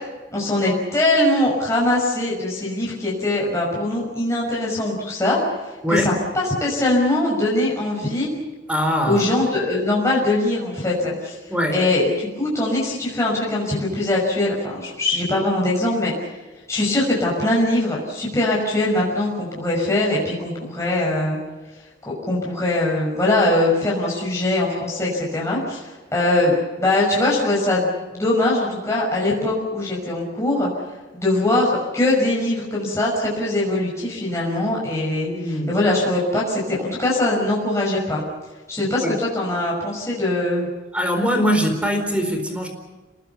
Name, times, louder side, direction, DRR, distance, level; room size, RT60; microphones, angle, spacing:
voice 1, 0.3-8.3 9.0-11.4 11.7-16.1 16.7-21.4 22.0-30.7 31.1-38.2 38.7-40.7, left 1 dB, 15° left, -4 dB, 5.8 m, -22 dB
voice 2, 8.7-9.2 11.5-11.8 24.1-24.2 35.2-35.7 39.0-39.2 40.9-42.7, equal, 5° right, 6 dB, 4.2 m, -22 dB
27.5 x 19.5 x 7.0 m, 1.2 s
head